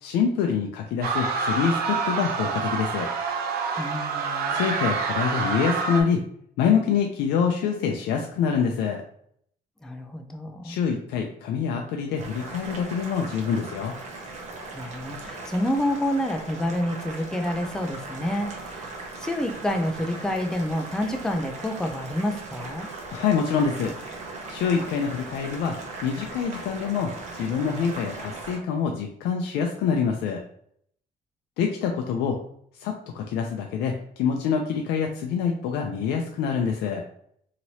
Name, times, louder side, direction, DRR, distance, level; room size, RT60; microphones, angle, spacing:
voice 1, 0.0-3.1 4.5-6.2 6.6-9.0 10.6-13.9 23.1-23.9 24.5-25.8 26.0-30.4 31.6-32.4 32.8-37.0, left 6 dB, 80° left, 3 dB, 0.4 m, -26 dB
sound 1, 1.0-6.0, right 5 dB, 65° right, 0.6 m, -27 dB
voice 2, 3.8-4.6 9.8-10.8 14.7-22.9, left 1 dB, 5° left, 4 dB, 0.4 m, -28 dB
Boiling, 12.2-28.6, right 3 dB, 45° right, 0.9 m, -38 dB
2.9 x 2.8 x 2.7 m, 0.66 s
cardioid pair, 110°, 17 cm